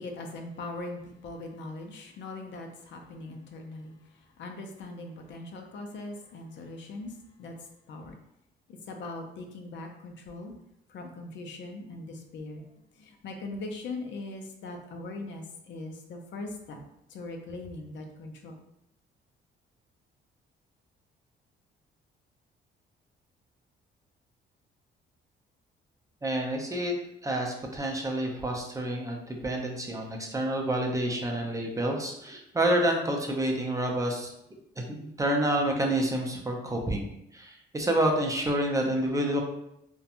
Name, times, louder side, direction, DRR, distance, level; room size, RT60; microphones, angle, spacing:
voice 1, 0.0-8.2 8.7-10.5 10.9-16.8 17.1-18.6, left 2 dB, 65° left, 3 dB, 0.5 m, -41 dB
voice 2, 26.2-26.9 27.2-34.3 34.8-37.1 37.3-39.4, right 1 dB, 15° right, 1 dB, 0.5 m, -28 dB
2.7 x 2.2 x 2.5 m, 0.79 s
cardioid pair, 90°, 20 cm